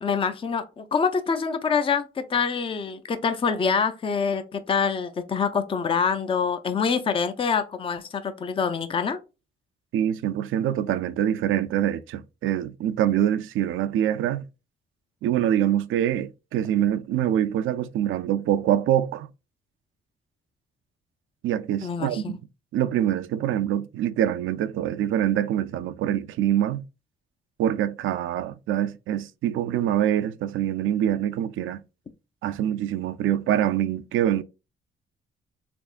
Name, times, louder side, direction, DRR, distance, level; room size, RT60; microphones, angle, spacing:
voice 1, 0.0-9.2 21.8-22.4, left 6 dB, 25° left, 0.5 m, -25 dB
voice 2, 9.9-14.4 15.2-19.3 21.4-22.3 22.7-26.8 27.6-31.8 32.4-34.4, right 11 dB, 75° right, 0.4 m, -25 dB
3.5 x 3.4 x 2.4 m
cardioid pair, 90°, 21 cm